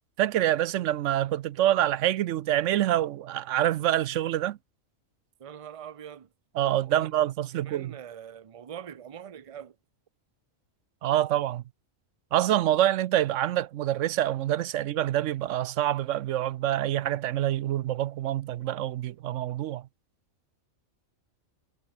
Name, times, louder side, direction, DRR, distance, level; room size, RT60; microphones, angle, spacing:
voice 1, 0.2-4.6 6.5-8.0 11.0-11.6 12.3-19.9, right 12 dB, 70° right, 0.9 m, -26 dB
voice 2, 5.4-6.3 6.7-7.1 7.5-9.7, right 9 dB, 35° right, 0.6 m, -43 dB
omnidirectional pair, 1.4 m